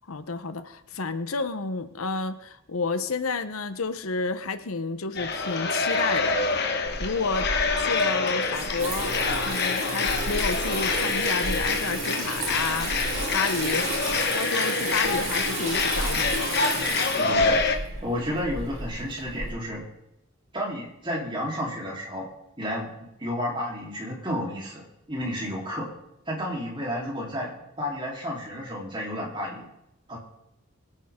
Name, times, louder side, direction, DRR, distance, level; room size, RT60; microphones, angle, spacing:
voice 1, 0.1-6.6 7.0-7.5 7.8-9.1 9.5-12.9 13.3-13.9 14.3-16.5, left 4 dB, 75° left, 11 dB, 0.9 m, -30 dB
sound 1, 5.1-17.8, left 4 dB, 50° left, 1.3 m, -26 dB
Water tap faucet / Sink (filling or washing), 6.9-19.5, right 2 dB, 65° right, 3.3 m, -32 dB
voice 2, 17.2-17.6 18.0-19.8 20.5-22.3 22.6-25.9 26.3-27.5 27.8-29.7 30.1-30.2, equal, 20° right, -3 dB, 3.5 m, -31 dB
23.0 x 9.1 x 3.7 m, 0.86 s
head